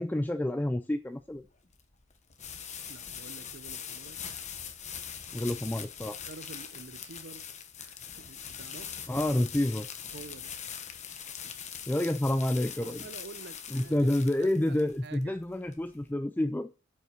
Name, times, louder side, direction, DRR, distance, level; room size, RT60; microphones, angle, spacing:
voice 1, 0.0-1.4 5.3-6.2 9.1-9.9 11.9-13.0 13.7-16.7, left 1 dB, 10° left, 0.4 m, -29 dB
sound 1, 1.2-16.1, left 8 dB, 35° left, 1.0 m, -42 dB
voice 2, 2.9-4.2 6.2-7.5 7.8-9.0 10.1-10.5 11.4-11.6 12.7-14.1 14.4-15.4, right 4 dB, 55° right, 0.7 m, -48 dB
8.9 x 5.5 x 5.0 m
head